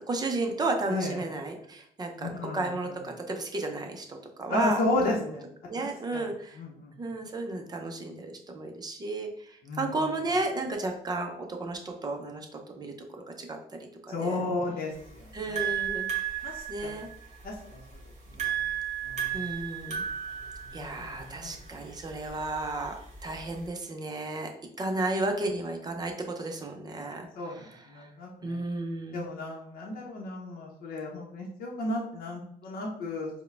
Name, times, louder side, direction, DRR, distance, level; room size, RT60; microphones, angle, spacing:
voice 1, 0.1-5.4 5.7-6.6 7.0-12.5 12.8-12.9 13.4-14.4 15.3-16.1 16.7-17.1 19.3-20.0 20.7-24.5 24.8-28.1 28.4-29.2, right 2 dB, 25° right, 3 dB, 0.6 m, -33 dB
voice 2, 2.2-2.6 4.5-5.4 5.8-6.2 6.6-6.9 9.6-9.9 14.1-15.7 16.4-17.0 17.4-17.8 18.3-18.6 19.0-19.5 20.7-21.5 27.4-28.6 29.1-33.3, left 2 dB, 60° left, -2 dB, 0.8 m, -33 dB
sound 1, 14.9-23.7, right 9 dB, 45° right, 1.3 m, -35 dB
4.6 x 2.2 x 3.3 m, 0.69 s
cardioid pair, 110°, 17 cm